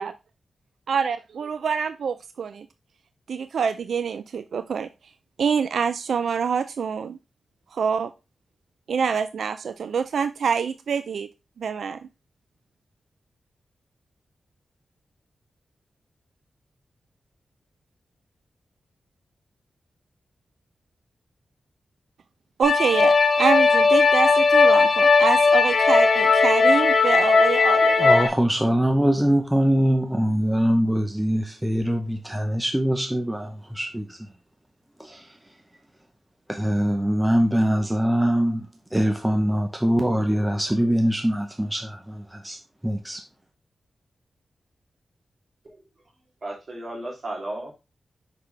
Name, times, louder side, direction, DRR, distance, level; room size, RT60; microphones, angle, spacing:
voice 1, 0.9-2.7 3.3-4.9 5.4-7.2 7.7-8.1 8.9-11.3 11.6-12.0 22.6-28.3, right 6 dB, 80° right, 12 dB, 0.3 m, -26 dB
sound 1, 22.6-28.3, left 4 dB, 55° left, 1.6 m, -17 dB
voice 2, 28.0-34.0 36.5-38.6 38.9-42.0 42.4-42.6 42.8-43.2, equal, 10° right, 3 dB, 0.8 m, -22 dB
voice 3, 46.4-47.7, right 1 dB, 40° right, -1 dB, 2.8 m, -34 dB
5.8 x 5.8 x 3.3 m, 0.26 s
wide cardioid pair, 125°, 0 cm